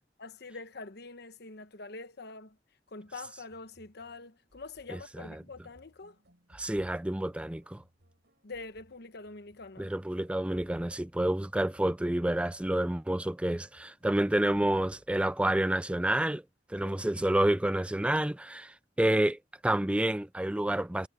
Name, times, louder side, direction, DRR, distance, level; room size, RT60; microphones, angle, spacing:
voice 1, 0.2-2.6 2.9-6.2 8.4-9.9 16.8-17.2, left 3 dB, 65° left, 1.1 m, -45 dB
sound 1, 3.1-15.5, equal, 65° right, 6.9 m, -63 dB
voice 2, 4.9-5.2 6.5-7.8 9.8-16.4 16.7-21.1, right 1 dB, 5° right, 0.4 m, -29 dB
head